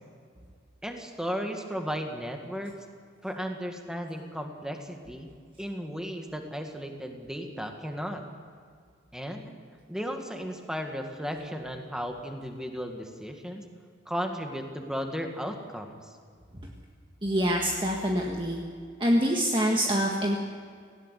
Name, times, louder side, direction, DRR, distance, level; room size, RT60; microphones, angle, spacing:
voice 1, 0.8-2.7 3.2-5.3 5.6-8.2 9.1-9.5 9.9-13.6 14.1-16.1, equal, 5° right, 4 dB, 1.9 m, -35 dB
voice 2, 17.2-18.6 19.0-20.4, equal, 25° right, 0 dB, 1.7 m, -25 dB
18.5 x 17.0 x 8.2 m, 2.1 s
head